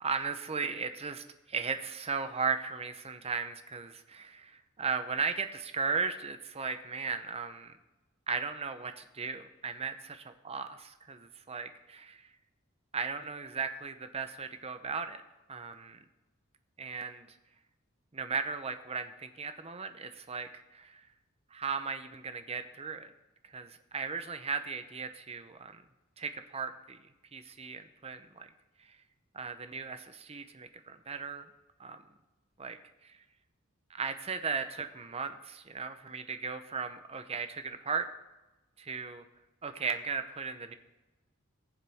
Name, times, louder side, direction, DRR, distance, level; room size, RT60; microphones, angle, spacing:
voice 1, 0.0-7.7 8.3-9.9 10.5-12.2 12.9-15.2 15.5-16.0 16.8-17.3 18.1-21.0 21.5-23.1 23.5-25.8 26.2-27.1 27.3-28.5 29.3-31.4 31.8-32.0 32.6-32.8 33.9-38.1 38.8-39.2 39.6-40.7, right 5 dB, 30° right, 9 dB, 0.7 m, -36 dB
19.0 x 7.3 x 3.6 m, 1.1 s
head